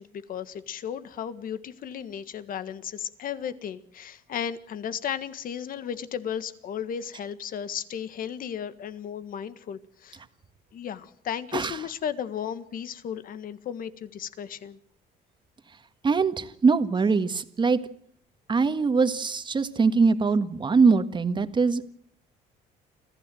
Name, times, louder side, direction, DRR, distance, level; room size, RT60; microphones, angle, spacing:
voice 1, 0.0-10.2 10.7-14.8, left 8 dB, 55° left, 1.6 m, -35 dB
voice 2, 16.0-17.8 18.5-21.9, right 4 dB, 25° right, 1.6 m, -22 dB
26.0 x 15.5 x 7.8 m
cardioid pair, 110°, 17 cm